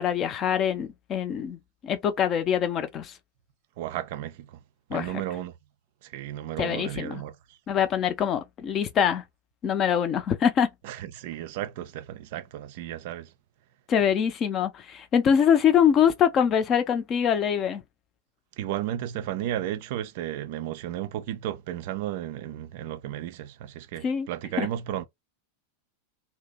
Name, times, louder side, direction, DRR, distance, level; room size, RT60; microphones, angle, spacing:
voice 1, 0.0-3.1 4.9-5.2 6.6-7.2 7.7-9.2 9.6-10.7 13.9-17.8 24.0-24.3 24.6-24.7, left 8 dB, 30° left, 0.5 m, -24 dB
voice 2, 3.8-4.6 4.9-5.5 6.0-7.4 10.8-13.3 18.6-25.1, right 12 dB, 50° right, 0.4 m, -33 dB
2.7 x 2.0 x 3.4 m
figure-of-eight pair, 90°, 0 cm